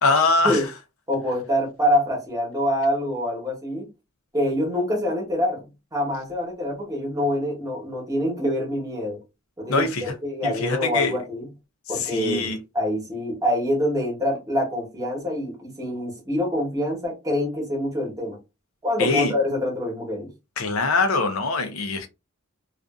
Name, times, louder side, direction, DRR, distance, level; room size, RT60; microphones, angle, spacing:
voice 1, 0.0-0.7 9.7-10.1 10.4-11.2 11.9-12.6 19.0-19.3 20.6-22.1, left 3 dB, 80° left, 0.6 m, -23 dB
voice 2, 1.1-3.9 4.3-9.2 9.6-11.5 11.9-18.4 18.8-20.3, left 1 dB, 15° right, 1.0 m, -25 dB
2.5 x 2.4 x 2.3 m
head